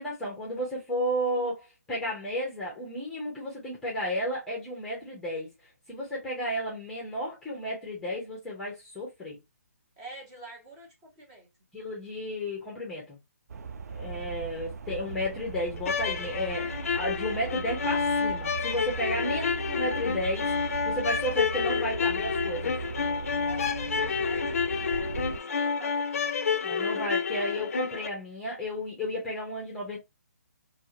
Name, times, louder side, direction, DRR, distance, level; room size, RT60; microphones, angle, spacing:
voice 1, 0.0-5.5 5.9-9.4 11.7-13.2 13.9-22.7 26.6-30.0, equal, 5° left, 0.8 m, -33 dB
voice 2, 10.0-11.5 14.0-14.5 23.4-26.3, right 2 dB, 25° right, 1.4 m, -48 dB
sound 1, 13.5-25.4, right 5 dB, 70° right, 0.4 m, -38 dB
sound 2, 15.8-28.1, left 5 dB, 55° left, 0.5 m, -29 dB
2.6 x 2.5 x 2.8 m
hypercardioid pair, 155°, 9 cm